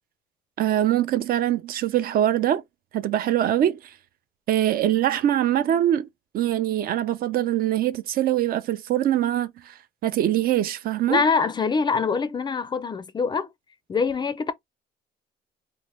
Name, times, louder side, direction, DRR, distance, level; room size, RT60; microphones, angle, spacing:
voice 1, 0.6-2.6 2.9-3.8 4.5-6.1 6.3-9.7 10.0-11.2, right 12 dB, 60° right, 0.5 m, -23 dB
voice 2, 11.1-13.5 13.9-14.5, left 5 dB, 25° left, 0.4 m, -24 dB
2.7 x 2.1 x 3.2 m
cardioid pair, 110°, 17 cm